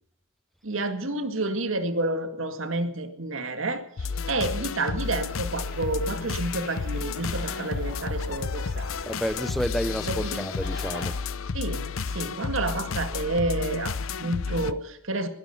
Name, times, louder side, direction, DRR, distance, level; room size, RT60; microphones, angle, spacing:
voice 1, 0.6-8.9 10.1-10.4 11.5-15.3, right 2 dB, 75° right, 8 dB, 2.0 m, -30 dB
sound 1, 4.0-14.7, left 5 dB, 90° left, 0.6 m, -31 dB
sound 2, 5.0-11.1, left 3 dB, 60° left, 3.5 m, -44 dB
voice 2, 9.0-11.2, equal, ahead, 13 dB, 0.5 m, -30 dB
20.5 x 12.5 x 5.6 m, 0.71 s
head